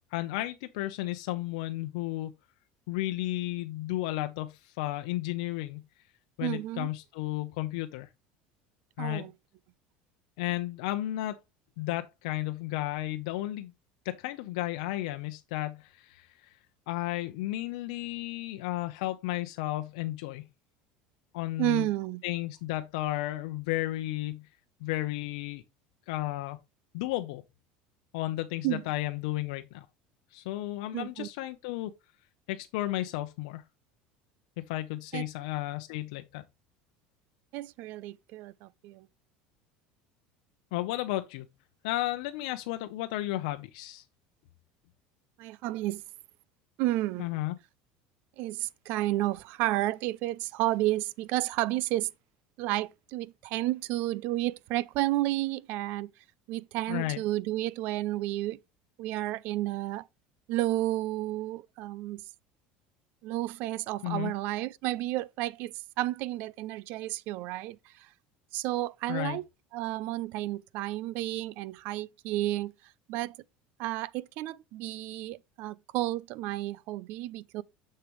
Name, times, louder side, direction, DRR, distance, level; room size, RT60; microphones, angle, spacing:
voice 1, 0.1-2.3 2.9-5.8 6.4-8.1 9.0-9.2 10.4-11.4 11.8-13.7 14.0-16.3 16.9-20.4 21.3-21.9 22.2-24.4 24.8-25.6 26.1-26.6 26.9-27.4 28.1-29.9 30.3-31.9 32.5-33.6 34.7-36.4 40.7-41.5 41.8-44.0 47.2-47.5 56.9-57.2 64.0-64.3 69.1-69.4, left 16 dB, 80° left, 0.7 m, -33 dB
voice 2, 6.4-6.9 9.0-9.3 21.6-22.2 28.6-28.8 30.9-31.3 35.1-35.3 37.5-39.1 45.4-46.0 46.8-47.3 48.4-52.1 52.6-56.1 56.5-58.6 59.0-60.1 60.5-62.2 63.2-68.1 68.5-69.4 69.7-72.7 73.1-73.4 73.8-77.6, right 16 dB, 55° right, 0.4 m, -31 dB
6.8 x 6.7 x 3.1 m
cardioid pair, 165°, 4 cm